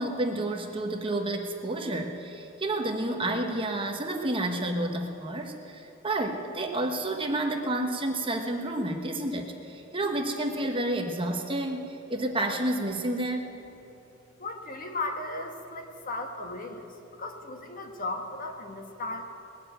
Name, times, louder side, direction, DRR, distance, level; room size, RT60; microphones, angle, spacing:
voice 1, 0.0-13.6, right 1 dB, 25° right, 3 dB, 1.2 m, -30 dB
voice 2, 14.4-19.2, left 2 dB, 45° left, 4 dB, 1.3 m, -36 dB
20.0 x 7.3 x 9.0 m, 2.9 s
head